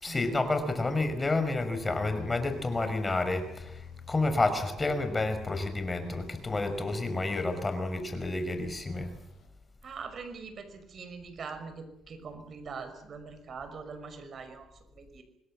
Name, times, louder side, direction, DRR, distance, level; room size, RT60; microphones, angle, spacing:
voice 1, 0.0-9.1, left 2 dB, 25° left, 9 dB, 5.4 m, -30 dB
sound 1, 1.8-9.8, left 6 dB, 60° left, 5.9 m, -49 dB
voice 2, 9.8-14.7 14.9-15.2, right 5 dB, 55° right, 9 dB, 5.7 m, -43 dB
26.0 x 20.0 x 7.8 m, 0.83 s
cardioid pair, 90°, 0 cm